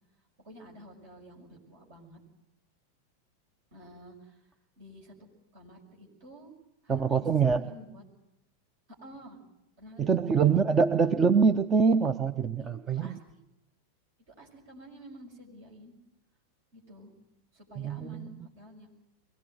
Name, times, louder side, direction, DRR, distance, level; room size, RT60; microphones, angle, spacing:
voice 1, 0.4-2.2 3.7-4.5 4.8-5.2 5.5-6.5 6.8-8.0 8.9-9.4 9.8-10.8 12.5-13.4 14.2-15.9 16.7-17.1 17.5-18.9, equal, 50° right, 1 dB, 6.2 m, -50 dB
voice 2, 6.9-7.6 10.0-13.1 17.8-18.3, right 5 dB, 20° right, 9 dB, 0.8 m, -24 dB
23.0 x 18.0 x 8.0 m, 0.83 s
figure-of-eight pair, 90°, 0 cm